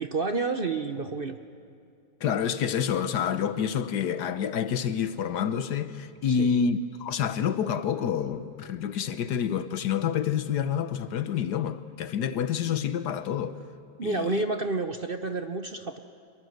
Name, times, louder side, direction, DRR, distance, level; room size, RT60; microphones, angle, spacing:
voice 1, 0.0-1.4 6.3-6.6 14.0-16.0, right 3 dB, 40° right, 0.9 m, -30 dB
voice 2, 2.2-13.6 14.0-14.4, left 8 dB, 75° left, 1.5 m, -28 dB
26.0 x 22.5 x 7.9 m
omnidirectional pair, 1.8 m